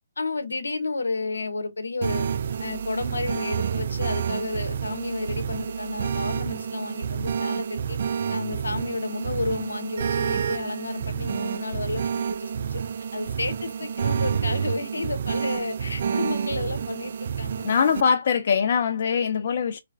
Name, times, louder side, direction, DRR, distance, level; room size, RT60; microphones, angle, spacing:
voice 1, 0.2-2.3 2.6-8.0 8.3-12.8 13.1-17.7, left 3 dB, 85° left, 0.8 m, -32 dB
sound 1, 2.0-18.0, right 7 dB, 55° right, 0.3 m, -29 dB
voice 2, 17.6-19.8, left 6 dB, 55° left, 0.3 m, -22 dB
3.2 x 2.3 x 3.3 m
hypercardioid pair, 145°, 0 cm